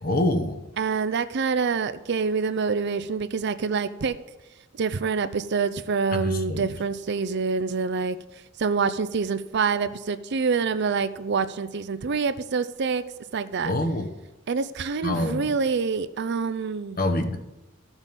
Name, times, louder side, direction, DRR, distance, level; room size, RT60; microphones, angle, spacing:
voice 1, 0.0-0.6 6.1-6.7 13.6-14.1 15.0-15.5 17.0-17.4, left 1 dB, 45° left, 6 dB, 1.1 m, -25 dB
voice 2, 0.8-4.2 4.8-8.2 8.6-13.0 13.3-13.7 14.5-17.0, right 5 dB, 60° right, 13 dB, 0.5 m, -26 dB
14.5 x 6.2 x 5.3 m, 1.0 s
head